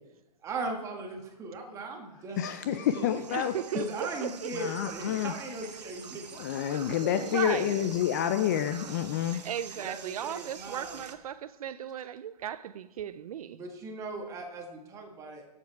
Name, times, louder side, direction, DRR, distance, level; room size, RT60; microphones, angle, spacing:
voice 1, 0.4-3.1 3.7-6.3 6.7-7.4 9.8-11.0 13.5-15.4, right 2 dB, 15° right, 1.4 m, -38 dB
sound 1, 2.3-11.1, right 6 dB, 85° right, 1.1 m, -46 dB
voice 2, 2.4-3.5 4.5-5.3 6.4-9.4, left 10 dB, 25° left, 0.4 m, -28 dB
voice 3, 3.3-4.5 6.8-7.8 9.4-13.6, right 10 dB, 60° right, 0.5 m, -36 dB
11.5 x 7.4 x 4.5 m
hypercardioid pair, 155°, 21 cm